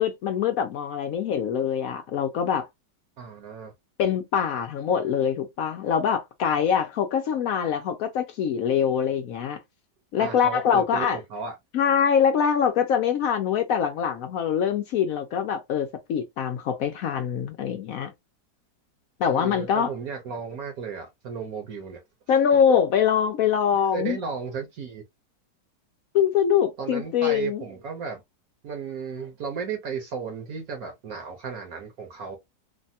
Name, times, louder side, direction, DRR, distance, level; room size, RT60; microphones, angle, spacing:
voice 1, 0.0-2.7 4.0-9.6 10.1-11.2 11.7-18.1 19.2-19.9 22.3-24.2 26.1-27.6, left 8 dB, 70° left, 0.8 m, -24 dB
voice 2, 3.2-3.7 10.1-11.6 19.3-22.0 23.9-25.0 26.8-28.2 28.6-32.4, right 6 dB, 60° right, 1.1 m, -34 dB
3.2 x 2.2 x 2.6 m
omnidirectional pair, 1.9 m